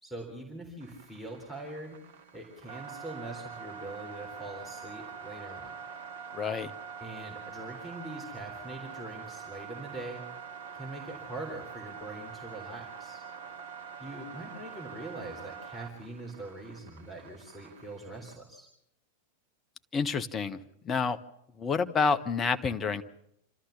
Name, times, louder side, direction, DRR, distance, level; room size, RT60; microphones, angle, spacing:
voice 1, 0.0-2.0 2.3-5.7 7.0-10.2 10.7-13.2 14.0-18.7, right 2 dB, 10° left, 1 dB, 3.7 m, -43 dB
sound 1, 0.8-18.4, right 6 dB, 60° right, 1.3 m, -45 dB
voice 2, 6.3-6.7 19.9-20.6 20.8-21.2 21.6-23.0, left 5 dB, 25° left, 8 dB, 1.1 m, -28 dB
28.5 x 13.0 x 7.2 m, 0.79 s
figure-of-eight pair, 90°, 0 cm